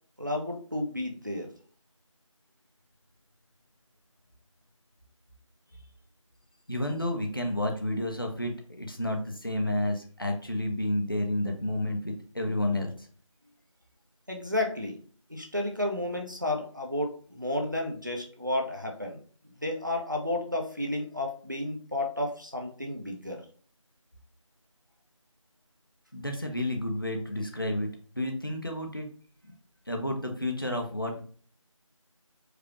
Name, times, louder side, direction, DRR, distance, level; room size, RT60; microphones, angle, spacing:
voice 1, 0.2-1.5 14.3-15.0 15.3-23.4, left 1 dB, 35° right, 2 dB, 0.7 m, -32 dB
voice 2, 6.7-13.1 26.1-27.9 28.2-29.1 29.9-31.2, left 1 dB, 40° left, 1 dB, 0.8 m, -30 dB
4.8 x 2.4 x 2.9 m, 0.44 s
figure-of-eight pair, 175°, 17 cm